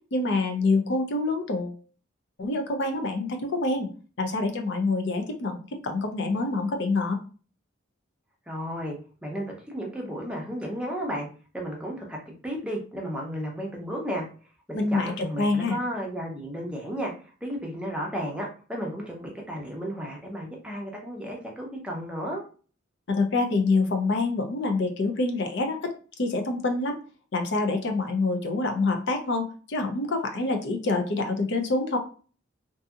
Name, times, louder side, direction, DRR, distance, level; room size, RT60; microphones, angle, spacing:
voice 1, 0.1-1.8 2.4-3.9 4.2-7.2 14.7-15.8 23.1-27.0 27.3-32.0, left 3 dB, 60° left, 5 dB, 0.5 m, -26 dB
voice 2, 8.5-9.0 9.2-11.3 11.5-14.2 14.7-17.1 17.4-22.4, equal, 5° right, -1 dB, 0.6 m, -33 dB
2.7 x 2.6 x 2.3 m, 0.38 s
head